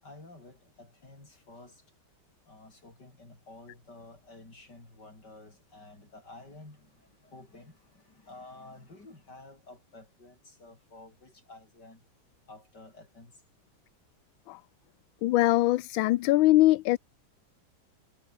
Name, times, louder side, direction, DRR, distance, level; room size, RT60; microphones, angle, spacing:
voice 1, 0.0-1.8 2.5-12.0 12.5-13.3, left 2 dB, 55° left, 7.7 m, -51 dB
voice 2, 15.2-17.0, left 17 dB, 85° left, 1.4 m, -22 dB
omnidirectional pair, 2.1 m